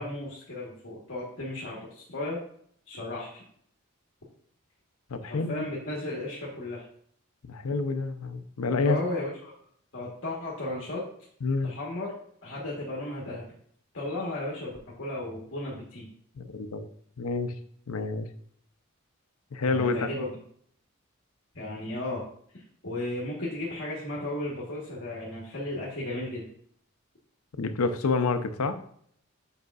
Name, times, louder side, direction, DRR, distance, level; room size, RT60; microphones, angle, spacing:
voice 1, 0.0-2.4 2.9-3.4 5.2-6.8 8.8-9.5 9.9-11.0 11.6-12.1 12.4-13.4 13.9-14.7 15.0-16.1 19.7-20.3 21.5-22.2 22.5-26.4, left 1 dB, 65° left, -5 dB, 1.3 m, -34 dB
voice 2, 5.1-5.6 7.4-9.0 11.4-11.7 16.4-16.8 17.2-17.5 17.9-18.3 19.5-20.1 27.6-28.8, left 3 dB, 90° left, 9 dB, 0.6 m, -28 dB
7.9 x 5.0 x 2.4 m, 0.63 s
head